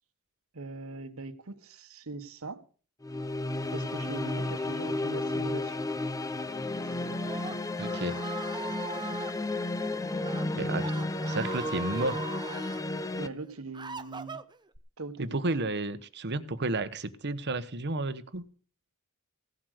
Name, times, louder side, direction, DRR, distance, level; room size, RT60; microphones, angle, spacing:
voice 1, 0.5-2.6 3.7-5.8 6.8-7.0 13.2-14.4 15.0-15.4, right 3 dB, 75° right, 1.4 m, -41 dB
sound 1, 3.0-13.3, left 2 dB, 15° left, 0.8 m, -33 dB
Screaming, 6.9-9.3 10.1-10.4 10.8-12.8 13.4-14.8, right 4 dB, 20° right, 0.8 m, -41 dB
voice 2, 7.8-8.2 10.6-10.9 11.3-12.2 15.2-18.4, right 2 dB, 55° right, 1.1 m, -32 dB
17.0 x 7.8 x 6.5 m
head